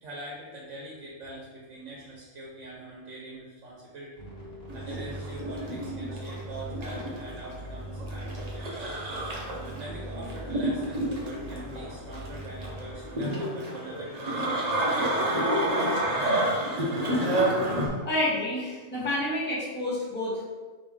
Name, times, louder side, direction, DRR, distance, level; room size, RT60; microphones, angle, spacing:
voice 1, 0.0-4.3 4.7-8.9 9.5-16.7, right 1 dB, 70° right, -4 dB, 1.2 m, -43 dB
sound 1, 4.2-12.9, right 1 dB, 50° left, 1.3 m, -41 dB
sound 2, 4.7-17.9, right 1 dB, 35° right, 0.7 m, -29 dB
voice 2, 18.0-20.5, left 1 dB, 10° left, -8 dB, 1.3 m, -29 dB
5.1 x 3.1 x 3.3 m, 1.3 s
omnidirectional pair, 1.3 m